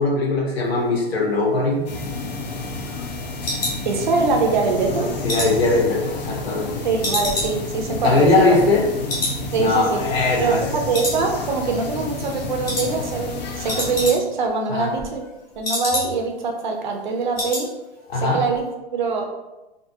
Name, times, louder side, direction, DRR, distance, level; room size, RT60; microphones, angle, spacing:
voice 1, 0.0-1.8 5.2-6.7 8.0-8.8 9.6-10.6 14.7-14.9 18.1-18.4, left 2 dB, 75° left, -2 dB, 1.0 m, -20 dB
sound 1, 1.7-4.5 4.9-6.6 7.0-8.8 9.1-9.4 9.7-9.8 10.3-10.7 10.9-11.7 12.0-12.3 12.6-12.9 13.2-13.3 13.5-14.5 14.8-16.4 16.7-16.8 17.1-17.7 18.0-18.2 18.5-18.6, left 1 dB, 25° left, 0.8 m, -29 dB
sound 2, 1.9-14.1, left 3 dB, 45° left, 0.4 m, -30 dB
voice 2, 3.9-5.1 6.8-8.7 9.5-10.0 10.4-15.2 15.6-17.7 18.1-18.6 18.9-19.3, right 4 dB, 50° right, 2 dB, 0.5 m, -23 dB
2.5 x 2.4 x 2.6 m, 1.0 s
hypercardioid pair, 160°, 31 cm